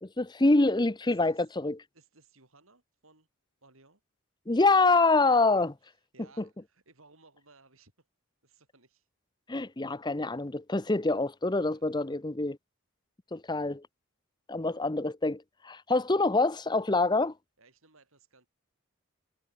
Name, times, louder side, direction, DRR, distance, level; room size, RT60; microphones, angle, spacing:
voice 1, 0.0-1.8 4.5-5.7 9.5-12.6 13.3-13.8 14.5-17.3, left 3 dB, 20° left, 0.7 m, -26 dB
voice 2, 1.0-1.6 1.9-3.3 3.6-4.0 5.3-8.1 8.4-9.1 11.7-11.9 16.0-16.2 17.6-18.5, right 3 dB, 70° right, 7.3 m, -61 dB
head